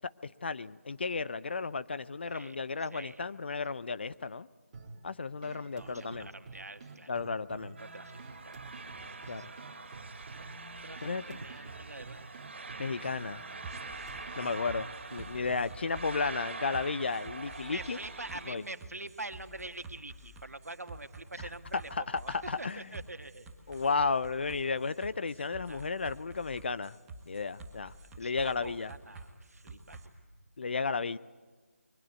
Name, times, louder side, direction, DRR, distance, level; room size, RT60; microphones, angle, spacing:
voice 1, 0.2-4.5 5.0-6.3 7.1-7.8 9.3-9.5 11.0-11.4 12.8-13.4 14.4-18.0 18.5-18.6 21.9-22.8 23.7-27.0 27.3-28.9 30.6-31.2, left 4 dB, 45° left, 16 dB, 0.6 m, -33 dB
voice 2, 2.9-3.3 5.7-7.2 7.8-8.2 8.5-8.6 9.0-9.5 9.9-10.5 10.8-12.3 16.1-16.9 17.4-23.5 23.7-23.9 25.7-25.9 28.2-30.1, right 2 dB, 80° right, 8 dB, 1.8 m, -46 dB
sound 1, 4.7-15.7, right 3 dB, 25° right, 2.5 m, -50 dB
sound 2, 7.8-18.5, right 4 dB, 45° right, 3.5 m, -45 dB
sound 3, 13.6-30.1, right 2 dB, 10° right, 1.8 m, -49 dB
22.5 x 21.5 x 8.2 m, 1.4 s
figure-of-eight pair, 165°, 8 cm